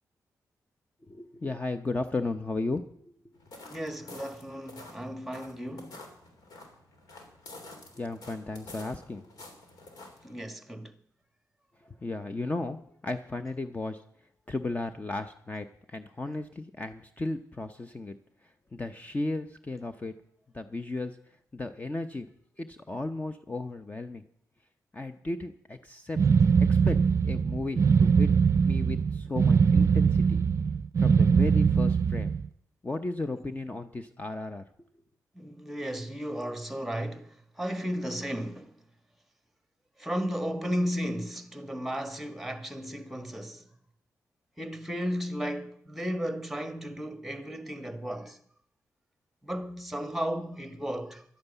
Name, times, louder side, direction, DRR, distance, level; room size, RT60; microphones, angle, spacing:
voice 1, 1.0-3.1 7.9-9.2 11.8-14.0 14.5-18.2 18.4-20.1 20.5-22.3 22.6-24.2 24.9-26.2 26.7-27.0 27.2-28.3 28.6-30.4 31.0-32.3 32.8-34.6, left 2 dB, 25° left, 0.8 m, -35 dB
sound 1, 3.4-10.4, left 2 dB, 85° left, 3.2 m, -49 dB
voice 2, 3.7-6.1 10.2-10.9 33.3-33.4 35.3-38.7 40.0-43.7 44.6-48.4 49.4-51.2, equal, 5° right, 1.4 m, -34 dB
sound 2, 26.2-32.5, right 6 dB, 50° right, 0.4 m, -22 dB
11.5 x 9.5 x 8.1 m
cardioid pair, 85°, 6 cm